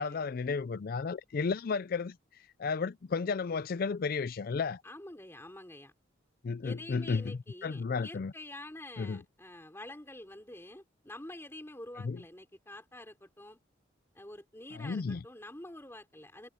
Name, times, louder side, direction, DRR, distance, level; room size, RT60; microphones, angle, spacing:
voice 1, 0.0-2.2 2.6-4.8 6.4-8.3 9.0-9.2 12.0-12.2 14.7-15.2, left 5 dB, 50° left, 0.4 m, -33 dB
voice 2, 4.8-5.9 6.6-13.6 14.1-16.5, left 1 dB, 15° left, 3.2 m, -47 dB
head